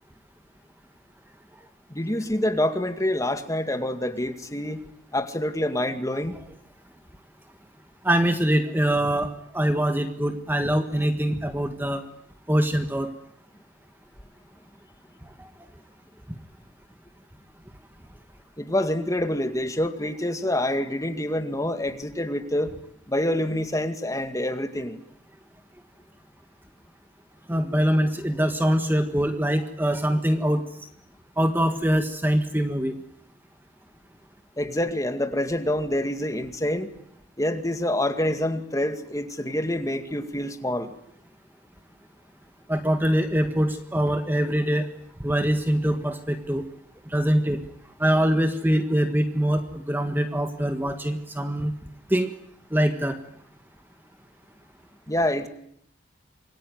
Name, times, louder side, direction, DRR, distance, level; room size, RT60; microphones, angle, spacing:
voice 1, 1.9-4.8 5.1-6.4 18.6-22.7 23.1-25.0 34.6-36.9 37.4-40.9 55.1-55.5, left 1 dB, 15° left, 8 dB, 2.1 m, -26 dB
voice 2, 8.0-12.0 12.5-13.1 27.5-30.6 31.4-33.0 42.7-44.8 45.2-46.6 47.1-47.6 48.0-51.7 52.1-52.3 52.7-53.2, equal, 10° right, 7 dB, 1.5 m, -23 dB
27.0 x 23.0 x 9.5 m, 0.70 s
head